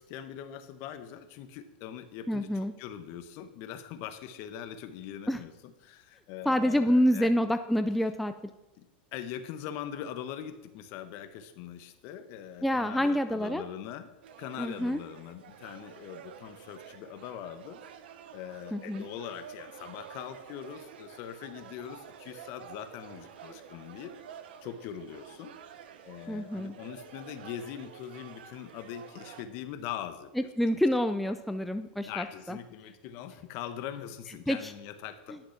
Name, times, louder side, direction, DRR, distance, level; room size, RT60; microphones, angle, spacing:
voice 1, 0.0-7.3 8.8-8.9 9.1-14.1 14.4-17.8 18.3-24.1 24.6-25.5 26.0-30.3 30.7-30.8 32.0-35.4, left 10 dB, 50° left, 10 dB, 1.0 m, -42 dB
voice 2, 2.3-2.7 5.3-5.4 6.5-8.3 12.6-13.6 14.6-15.0 18.7-19.1 26.3-26.7 30.4-32.6 34.5-34.7, equal, ahead, 8 dB, 0.3 m, -27 dB
sound 1, 14.2-29.4, right 8 dB, 80° right, 0.9 m, -49 dB
10.5 x 6.0 x 5.8 m, 0.99 s
supercardioid pair, 135°, 5 cm